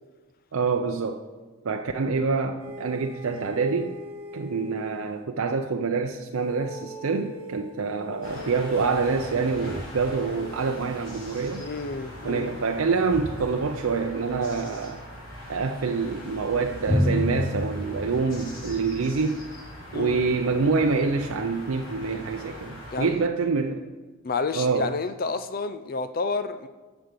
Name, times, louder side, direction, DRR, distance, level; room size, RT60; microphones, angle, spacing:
voice 1, 0.5-1.2 1.6-4.0 4.3-11.7 12.2-15.0 15.5-19.4 19.9-23.8 24.5-24.9, right 4 dB, 80° right, 4 dB, 0.6 m, -26 dB
sound 1, 2.6-5.2 6.4-9.7, left 1 dB, 25° right, 1.7 m, -41 dB
sound 2, 8.2-23.1, equal, 75° left, 3.7 m, -41 dB
voice 2, 11.6-12.6 19.9-20.3 22.9-23.1 24.2-26.7, left 4 dB, 45° left, 11 dB, 0.4 m, -30 dB
Drum, 16.9-19.3, left 1 dB, 15° left, 1.8 m, -27 dB
9.2 x 7.1 x 6.7 m, 1.3 s
head